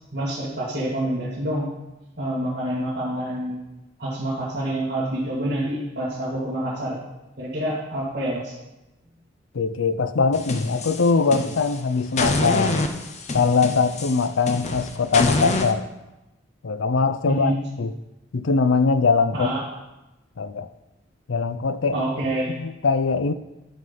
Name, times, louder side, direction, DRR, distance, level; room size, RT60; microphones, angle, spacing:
voice 1, 0.1-1.7 2.2-3.6 4.0-7.0 7.4-8.5 17.3-17.6 19.3-19.6 21.9-22.5, right 1 dB, 50° right, -8 dB, 2.2 m, -27 dB
voice 2, 9.5-12.8 13.3-15.9 16.6-17.5 17.8-17.9 18.3-19.5 20.4-20.7 21.3-22.0 22.5-23.3, left 4 dB, 90° left, 13 dB, 0.5 m, -22 dB
sound 1, 10.3-11.8 12.2-15.7, left 2 dB, 35° left, 0.7 m, -26 dB
10.5 x 5.5 x 5.6 m, 1.0 s
head